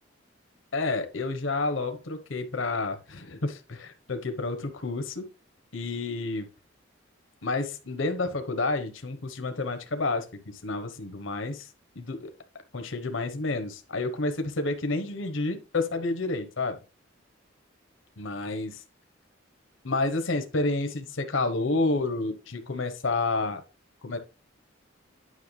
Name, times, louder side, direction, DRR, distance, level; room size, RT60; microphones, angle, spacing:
voice 1, 0.7-5.3 5.7-6.5 7.4-12.3 12.7-16.8 18.2-18.8 19.8-23.6 24.0-24.2, left 3 dB, 80° left, 1.0 m, -30 dB
9.6 x 5.6 x 3.2 m
head